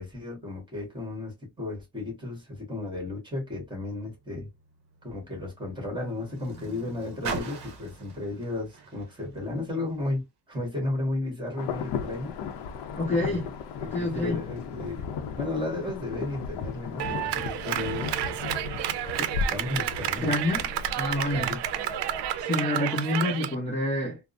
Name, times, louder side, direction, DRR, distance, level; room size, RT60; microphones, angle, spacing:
voice 1, 0.0-4.5 5.0-12.4 13.2-13.4 13.8-18.4 19.5-20.3 21.3-21.6, left 2 dB, 10° right, 1.4 m, -34 dB
Car, 3.6-10.2 11.0-11.1, right 5 dB, 40° right, 0.8 m, -42 dB
Insect / Thunder / Rain, 11.6-22.4, left 6 dB, 80° left, 0.6 m, -36 dB
voice 2, 13.0-13.5 13.9-14.4 19.2-19.3 20.2-20.7 20.9-21.5 22.4-24.2, left 1 dB, 15° left, 0.8 m, -27 dB
Clapping, 17.0-23.5, right 12 dB, 80° right, 0.5 m, -30 dB
3.4 x 2.0 x 2.5 m
cardioid pair, 175°, 41 cm